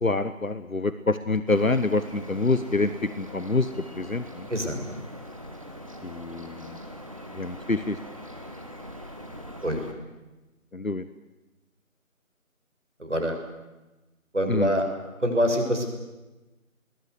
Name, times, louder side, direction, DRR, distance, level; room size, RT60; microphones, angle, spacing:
voice 1, 0.0-3.7 3.9-4.5 6.0-6.8 7.3-8.0 10.7-11.0 14.5-14.7, left 3 dB, 75° left, 12 dB, 1.4 m, -26 dB
sound 1, 1.5-9.9, equal, 25° right, 1.9 m, -42 dB
voice 2, 4.5-5.0 9.6-9.8 13.0-13.4 14.3-14.9 15.2-15.8, equal, 55° right, 4 dB, 6.6 m, -25 dB
28.5 x 21.5 x 8.3 m, 1.1 s
figure-of-eight pair, 170°, 41 cm